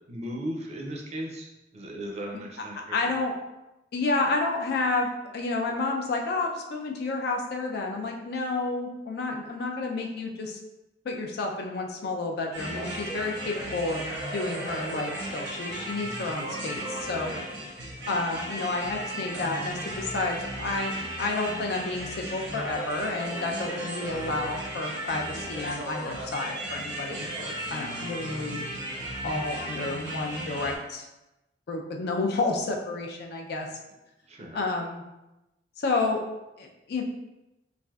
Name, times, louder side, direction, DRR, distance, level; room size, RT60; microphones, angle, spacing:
voice 1, 0.1-3.0 18.0-18.1 24.1-24.4 34.3-34.6, equal, 35° right, 0 dB, 0.5 m, -37 dB
voice 2, 2.9-3.3 3.9-10.6 11.0-14.1 14.3-17.3 18.1-20.9 21.2-28.6 29.2-31.1 31.7-33.7 34.5-35.0 35.8-36.2 36.6-37.0, left 3 dB, 60° left, 2 dB, 0.4 m, -30 dB
sound 1, 12.5-30.8, right 1 dB, 80° right, 0.7 m, -35 dB
3.2 x 2.5 x 2.3 m, 0.97 s
head